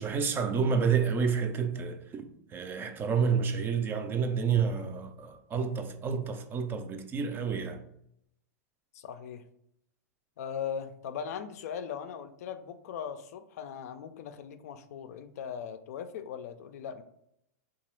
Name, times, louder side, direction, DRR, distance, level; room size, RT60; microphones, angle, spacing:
voice 1, 0.0-7.8, right 6 dB, 25° right, 0.4 m, -29 dB
voice 2, 8.9-9.4 10.4-17.0, left 7 dB, 65° left, 0.4 m, -39 dB
2.8 x 2.3 x 3.1 m
hypercardioid pair, 115°, 9 cm